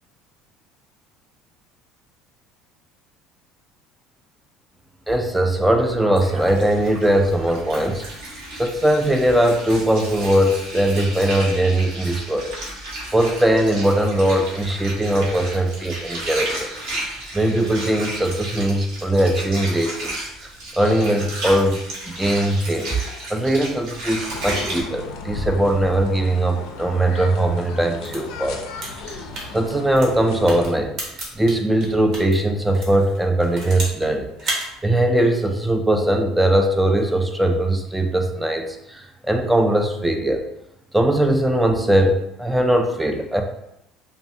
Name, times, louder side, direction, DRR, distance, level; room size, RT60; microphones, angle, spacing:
voice 1, 5.1-8.0 8.5-12.5 13.1-16.7 17.3-20.5 20.8-23.0 23.3-28.6 29.1-29.2 29.5-30.9 31.4-34.6 34.8-40.4 40.9-43.4, right 1 dB, 5° right, 4 dB, 0.3 m, -20 dB
Water, 6.1-24.8, right 1 dB, 80° right, 1.0 m, -33 dB
sound 1, 24.3-30.7, left 3 dB, 80° left, 0.4 m, -35 dB
sound 2, 27.9-32.3 32.7-34.1 34.4-34.7, right 2 dB, 55° right, 1.0 m, -32 dB
3.0 x 2.2 x 2.6 m, 0.80 s
cardioid pair, 125°, 0 cm